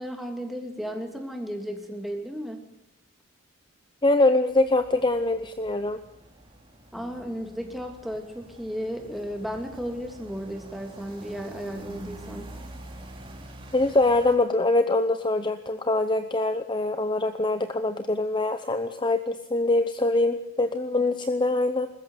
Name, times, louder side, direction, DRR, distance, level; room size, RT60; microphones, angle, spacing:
voice 1, 0.0-2.7 6.9-12.6, equal, ahead, 3 dB, 2.8 m, -34 dB
voice 2, 4.0-6.0 13.7-21.9, left 2 dB, 25° left, 9 dB, 0.8 m, -24 dB
sound 1, 4.5-14.4, right 1 dB, 25° right, 3.2 m, -46 dB
21.0 x 14.0 x 9.7 m, 0.82 s
head